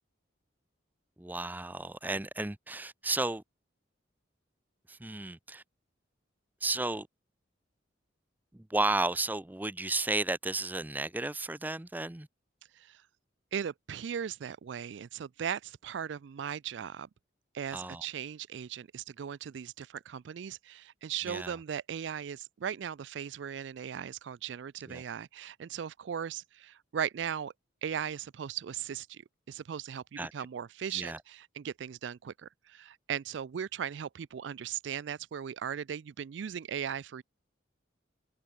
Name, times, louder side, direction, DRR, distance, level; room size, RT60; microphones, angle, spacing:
voice 1, 1.2-3.4 4.9-5.6 6.6-7.1 8.5-12.3 17.7-18.1 21.3-21.6 24.9-25.0 30.2-30.3 30.9-31.2, right 2 dB, 10° right, 0.5 m, -33 dB
voice 2, 13.5-17.1 17.5-27.5 27.8-29.2 29.5-37.2, right 8 dB, 70° right, 0.4 m, -38 dB
head